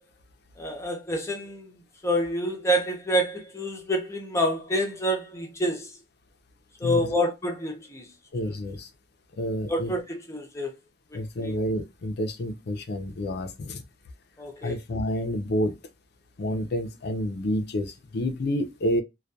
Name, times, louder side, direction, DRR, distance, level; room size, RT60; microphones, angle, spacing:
voice 1, 0.6-5.9 6.8-8.1 8.4-8.5 9.7-10.7 11.1-11.2 11.4-11.5 14.4-14.8, equal, 15° left, 0.6 m, -28 dB
voice 2, 6.8-7.3 8.3-8.9 9.4-9.9 11.1-13.8 14.6-15.7 16.4-19.0, equal, 60° left, 0.5 m, -29 dB
2.2 x 2.2 x 2.6 m
head